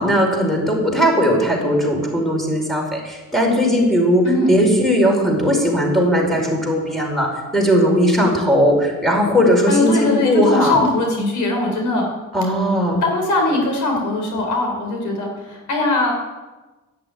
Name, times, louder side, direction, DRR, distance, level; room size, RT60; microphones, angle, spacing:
voice 1, 0.0-7.3 7.5-10.8 12.3-13.0, equal, ahead, 0 dB, 5.1 m, -18 dB
voice 2, 9.7-12.1 13.0-16.1, left 2 dB, 75° left, 1 dB, 4.4 m, -20 dB
11.0 x 10.5 x 9.5 m, 1.2 s
cardioid pair, 90°, 30 cm